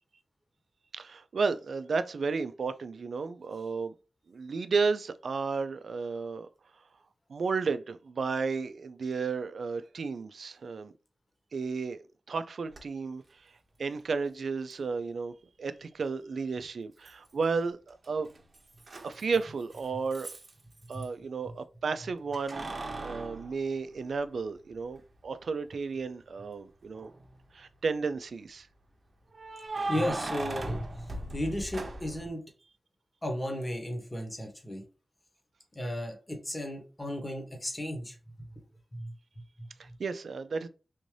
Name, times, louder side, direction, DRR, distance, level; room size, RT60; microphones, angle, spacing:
voice 1, 0.9-3.9 4.3-6.5 7.3-10.9 11.5-13.5 13.8-15.3 15.6-18.3 19.0-20.3 20.9-27.1 27.5-28.7 39.8-40.7, right 4 dB, 85° right, 0.3 m, -33 dB
Keys jangling, 12.7-12.8 14.7-14.8 17.1-17.6 17.9-21.1 22.3-24.5 24.9-25.0 26.8-27.4 29.3-32.3, right 2 dB, 60° right, 0.7 m, -39 dB
voice 2, 29.9-32.4 33.2-34.8 35.7-38.5 38.9-39.1 39.6-39.9, left 1 dB, 20° left, 1.1 m, -35 dB
3.5 x 2.6 x 3.1 m
cardioid pair, 60°, 0 cm